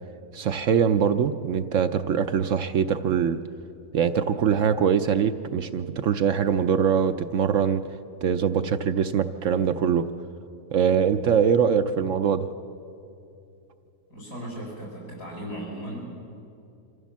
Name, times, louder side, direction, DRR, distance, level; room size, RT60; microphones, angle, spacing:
voice 1, 0.3-3.4 3.9-7.8 8.2-10.0 10.7-12.5, right 7 dB, 65° right, 9 dB, 0.9 m, -23 dB
voice 2, 14.1-16.1, right 1 dB, 80° left, -3 dB, 7.6 m, -36 dB
25.0 x 15.0 x 7.3 m, 2.6 s
omnidirectional pair, 1.7 m